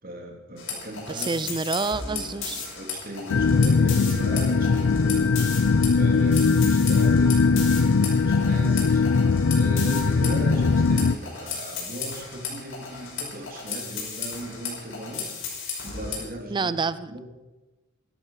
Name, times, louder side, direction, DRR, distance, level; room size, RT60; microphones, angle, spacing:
voice 1, 0.0-1.5 2.1-15.3 15.8-16.7 17.1-17.2, right 1 dB, 45° right, 2 dB, 3.2 m, -37 dB
sound 1, 0.6-16.2, left 5 dB, 65° left, 5.6 m, -35 dB
voice 2, 1.1-2.6 16.5-17.2, right 4 dB, 25° right, 15 dB, 0.4 m, -28 dB
sound 2, 3.3-11.2, left 4 dB, 85° left, 0.5 m, -20 dB
18.0 x 12.0 x 5.7 m, 1.2 s
head